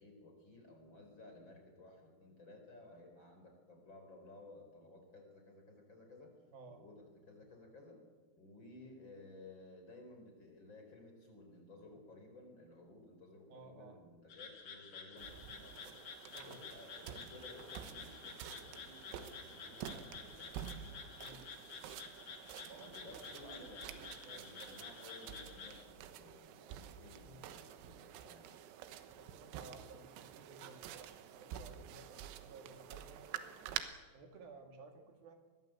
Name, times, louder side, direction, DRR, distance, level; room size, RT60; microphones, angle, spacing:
voice 1, 0.0-6.3 6.6-8.0 8.3-16.0 16.4-20.5 22.8-28.6, left 2 dB, 25° left, 3 dB, 4.7 m, -57 dB
voice 2, 6.5-6.8 8.7-8.9 13.5-14.0 16.3-16.7 21.2-21.5 22.7-24.5 27.2-27.4 29.1-33.6 34.1-35.4, right 4 dB, 55° right, 5 dB, 3.4 m, -56 dB
sound 1, 14.3-25.8, left 5 dB, 45° left, 2.7 m, -51 dB
sound 2, 15.2-33.8, right 10 dB, 90° right, 4.0 m, -49 dB
25.0 x 20.5 x 8.0 m, 1.3 s
omnidirectional pair, 5.9 m